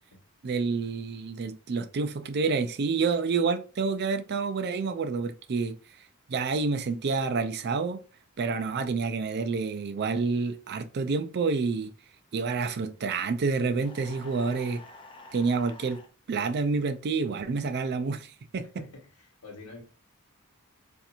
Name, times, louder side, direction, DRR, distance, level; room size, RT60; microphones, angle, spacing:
voice 1, 0.4-5.8 6.3-8.0 8.4-11.9 12.3-14.8 15.3-16.0 16.3-18.7, right 4 dB, 50° right, 0.4 m, -28 dB
sound 1, 13.8-16.1, left 2 dB, 20° left, 0.4 m, -48 dB
voice 2, 18.5-19.8, left 2 dB, 80° left, 1.4 m, -47 dB
4.2 x 2.5 x 2.5 m
head